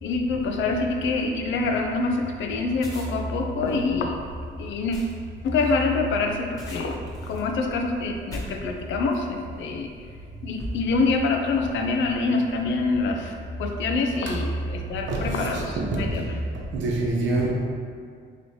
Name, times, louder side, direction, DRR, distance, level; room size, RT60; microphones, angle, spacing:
voice 1, 0.0-4.2 4.6-5.0 5.4-9.9 10.4-16.4, left 3 dB, 75° left, 3 dB, 0.5 m, -26 dB
sound 1, 2.7-9.4 10.0-10.2 10.6-11.3, left 1 dB, 20° left, 1.1 m, -41 dB
voice 2, 15.1-16.2 16.7-17.5, right 2 dB, 70° right, -2 dB, 0.8 m, -26 dB
3.1 x 3.0 x 4.1 m, 2.1 s
cardioid pair, 90°, 20 cm